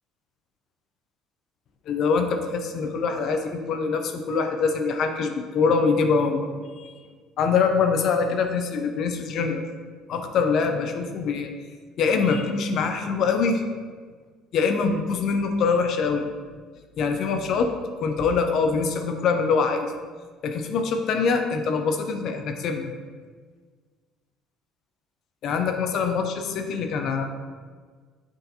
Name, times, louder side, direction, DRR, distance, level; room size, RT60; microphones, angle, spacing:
voice 1, 1.9-6.5 6.8-6.9 7.4-9.6 10.1-11.5 12.0-13.6 14.5-16.3 17.0-17.7 18.0-19.9 20.4-22.9 25.4-27.3, left 5 dB, 60° left, 5 dB, 0.4 m, -24 dB
5.8 x 2.6 x 2.7 m, 1.5 s
supercardioid pair, 70°, 0 cm